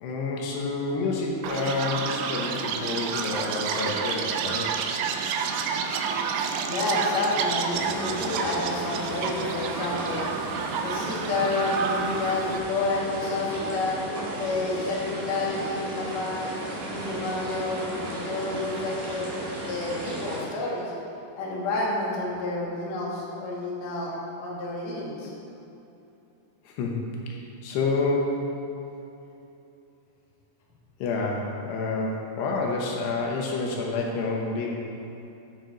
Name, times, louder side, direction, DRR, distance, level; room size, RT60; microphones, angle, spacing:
voice 1, 0.0-4.7 16.9-17.0 26.6-28.5 31.0-34.8, left 3 dB, 80° left, -1 dB, 3.1 m, -28 dB
Chirp tweet, 1.4-12.6, right 6 dB, 85° right, 2.9 m, -30 dB
voice 2, 6.7-10.3 10.8-14.0 14.4-16.5 16.9-20.9 21.4-24.1 24.4-25.3, left 2 dB, 50° left, -5 dB, 2.5 m, -29 dB
sound 1, 7.7-20.4, right 1 dB, 65° right, 4.2 m, -35 dB
14.5 x 7.6 x 3.9 m, 2.9 s
omnidirectional pair, 4.9 m